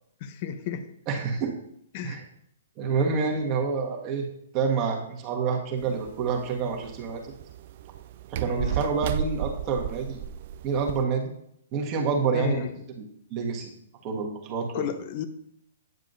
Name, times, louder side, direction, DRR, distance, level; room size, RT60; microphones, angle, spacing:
voice 1, 0.2-0.9 1.9-2.2 8.4-8.8 12.3-12.8 14.7-15.3, left 8 dB, 45° left, 10 dB, 0.8 m, -33 dB
voice 2, 1.1-1.5 2.0-2.2 2.8-4.2 4.5-7.3 8.3-10.2 10.6-11.3 11.7-12.6 13.3-13.7 14.0-14.8, right 5 dB, 35° right, 1 dB, 1.5 m, -27 dB
sound 1, 5.8-11.0, right 9 dB, 50° right, 0.4 m, -34 dB
9.3 x 7.3 x 2.7 m, 0.72 s
hypercardioid pair, 125°, 0 cm